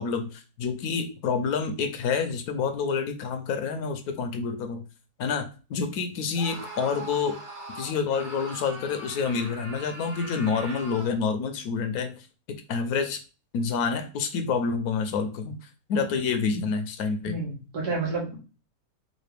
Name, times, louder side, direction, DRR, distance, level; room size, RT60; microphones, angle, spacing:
voice 1, 0.0-4.8 5.2-7.4 7.8-12.1 12.7-13.2 13.5-15.6 15.9-17.4, left 5 dB, 75° left, 6 dB, 1.0 m, -28 dB
Screaming, 6.3-11.2, right 1 dB, 20° right, 1.0 m, -41 dB
voice 2, 17.3-18.4, right 3 dB, 80° right, -3 dB, 2.0 m, -30 dB
4.1 x 2.5 x 3.3 m, 0.33 s
omnidirectional pair, 1.7 m